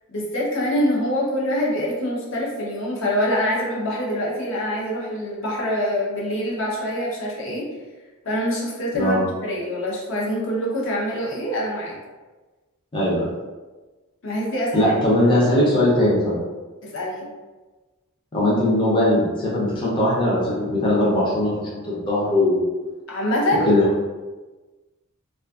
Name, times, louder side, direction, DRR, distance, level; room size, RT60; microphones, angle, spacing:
voice 1, 0.1-7.7 8.2-9.2 9.4-12.0 14.2-14.9 16.8-17.3 23.1-23.7, equal, 60° left, -4 dB, 0.7 m, -25 dB
voice 2, 12.9-13.3 14.7-16.4 18.3-22.6 23.7-23.8, left 1 dB, 25° left, -7 dB, 0.5 m, -20 dB
2.5 x 2.4 x 2.3 m, 1.2 s
head